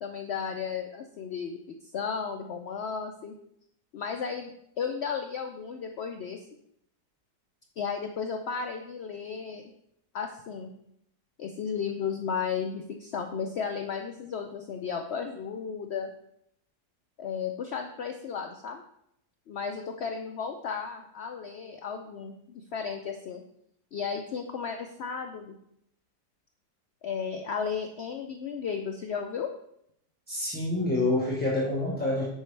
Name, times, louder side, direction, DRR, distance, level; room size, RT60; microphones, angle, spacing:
voice 1, 0.0-1.6 1.9-3.3 3.9-6.4 7.8-9.6 10.1-10.7 11.4-16.1 17.2-18.8 19.5-23.4 23.9-25.5 27.0-29.5, left 6 dB, 85° left, 5 dB, 0.5 m, -34 dB
voice 2, 30.3-32.3, left 2 dB, 5° left, -5 dB, 1.1 m, -27 dB
8.1 x 5.5 x 3.3 m, 0.75 s
omnidirectional pair, 1.7 m